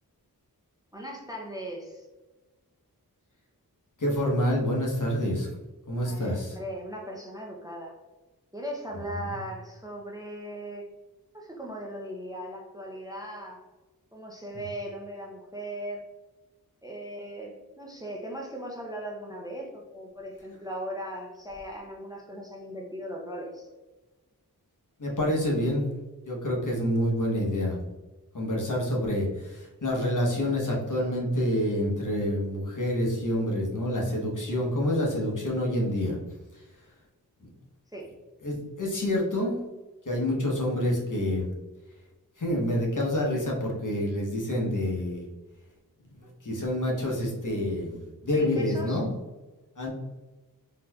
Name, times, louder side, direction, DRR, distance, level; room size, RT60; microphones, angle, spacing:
voice 1, 0.9-2.1 6.0-7.9 8.5-10.9 11.3-13.6 14.1-16.0 16.8-23.7 37.9-38.1 48.3-49.0, right 1 dB, 10° right, -1 dB, 0.5 m, -38 dB
voice 2, 4.0-5.5 5.9-6.6 9.2-9.3 25.0-25.9 26.3-27.8 28.3-36.2 38.4-39.6 40.1-41.5 42.4-45.3 46.4-49.1 49.8-49.9, left 1 dB, 55° left, -2 dB, 1.0 m, -27 dB
4.0 x 2.7 x 2.2 m, 1.2 s
wide cardioid pair, 50°, 38 cm